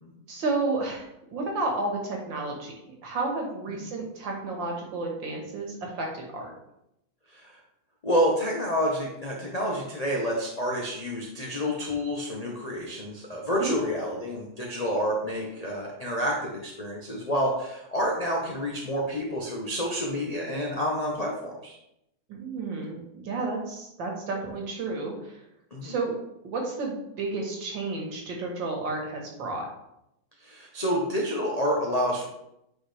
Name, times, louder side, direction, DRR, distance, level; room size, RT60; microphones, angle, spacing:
voice 1, 0.3-2.7 3.0-6.5 13.6-13.7 22.3-25.4 25.8-26.1 26.4-29.7, right 3 dB, 65° right, 0 dB, 2.0 m, -31 dB
voice 2, 8.0-21.8 25.7-25.9 30.4-32.2, equal, 50° left, -3 dB, 0.4 m, -29 dB
8.5 x 4.3 x 3.3 m, 0.83 s
omnidirectional pair, 2.3 m